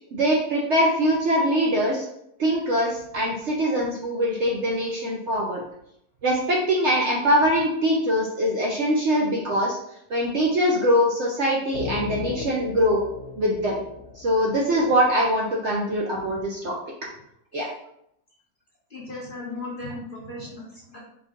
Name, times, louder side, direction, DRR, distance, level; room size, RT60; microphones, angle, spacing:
voice 1, 0.1-2.1 2.4-5.6 6.2-9.8 10.1-13.0 13.4-13.8 14.2-16.7 17.5-17.7, equal, 60° right, -2 dB, 0.8 m, -23 dB
sound 1, 11.7-15.3, left 5 dB, 85° left, 1.2 m, -36 dB
voice 2, 18.9-21.0, left 2 dB, 40° left, -5 dB, 0.9 m, -36 dB
4.4 x 2.7 x 3.5 m, 0.76 s
omnidirectional pair, 1.7 m